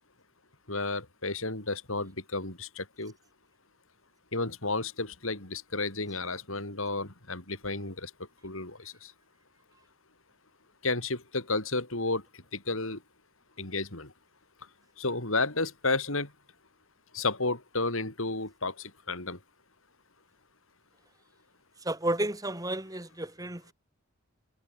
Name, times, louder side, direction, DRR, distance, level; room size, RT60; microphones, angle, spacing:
voice 1, 0.7-3.1 4.3-8.1 8.4-9.1 10.8-12.2 12.5-13.0 13.6-14.1 15.0-16.3 17.1-19.4, left 3 dB, 70° left, 5.3 m, -32 dB
voice 2, 21.8-23.7, right 1 dB, 15° right, 2.9 m, -32 dB
head